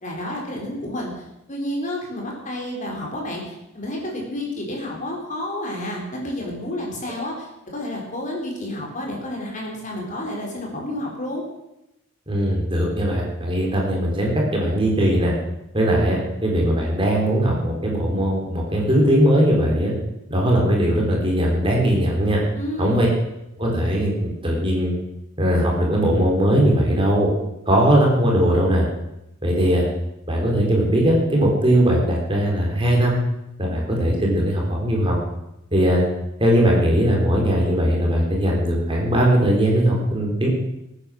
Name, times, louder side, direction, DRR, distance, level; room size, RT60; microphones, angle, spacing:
voice 1, 0.0-11.4 22.6-23.0, left 1 dB, 35° left, -1 dB, 4.1 m, -30 dB
voice 2, 12.3-15.3 15.7-19.9 20.3-22.4 22.8-23.1 23.6-25.0 25.4-27.3 27.7-28.9 29.4-29.9 30.3-33.2 33.6-35.2 35.7-36.0 36.4-40.5, equal, 25° right, -1 dB, 3.7 m, -19 dB
21.0 x 9.8 x 6.4 m, 0.89 s
head